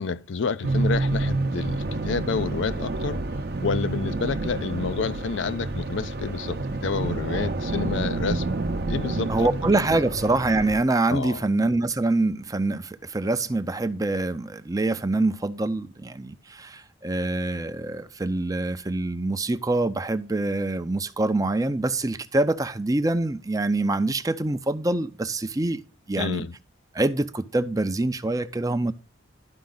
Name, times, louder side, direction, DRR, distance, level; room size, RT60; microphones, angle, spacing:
voice 1, 0.0-3.3 3.6-8.6 8.9-9.5 9.9-10.0 11.1-11.4 26.2-26.6, left 5 dB, 70° left, 0.5 m, -29 dB
sound 1, 0.6-10.8, right 2 dB, 50° right, 0.7 m, -28 dB
voice 2, 9.3-25.8 26.1-26.4 26.9-28.9, right 2 dB, 20° right, 0.5 m, -25 dB
11.5 x 5.1 x 3.8 m
head